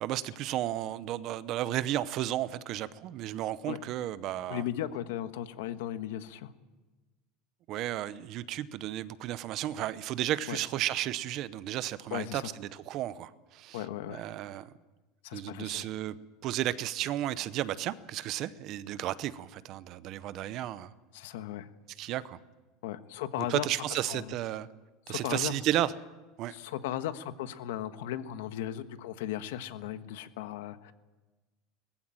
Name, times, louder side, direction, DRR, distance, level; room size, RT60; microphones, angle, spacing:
voice 1, 0.0-4.6 7.7-14.7 15.3-16.2 16.4-20.9 22.0-22.4 23.4-24.7 25.1-25.9 26.4-26.5, right 13 dB, 40° right, 16 dB, 0.8 m, -33 dB
voice 2, 4.5-6.5 10.5-10.6 12.1-12.4 13.7-14.2 15.2-15.9 21.1-21.7 22.8-24.3 25.1-25.5 26.5-30.9, left 11 dB, 90° left, 10 dB, 1.4 m, -36 dB
20.5 x 15.0 x 9.0 m, 1.2 s
cardioid pair, 165°, 0 cm